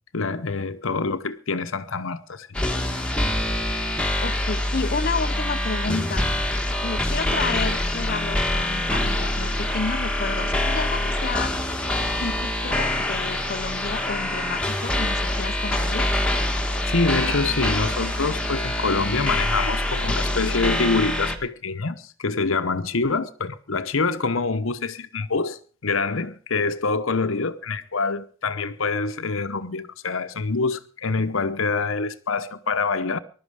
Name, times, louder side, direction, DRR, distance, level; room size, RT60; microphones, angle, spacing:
voice 1, 0.1-2.5 16.9-33.2, left 4 dB, 70° left, 1.0 m, -25 dB
sound 1, 2.5-21.4, left 1 dB, 5° left, 1.7 m, -25 dB
voice 2, 4.2-6.3 6.8-11.5 12.2-16.1, left 4 dB, 45° left, 0.7 m, -31 dB
20.0 x 12.0 x 4.9 m
head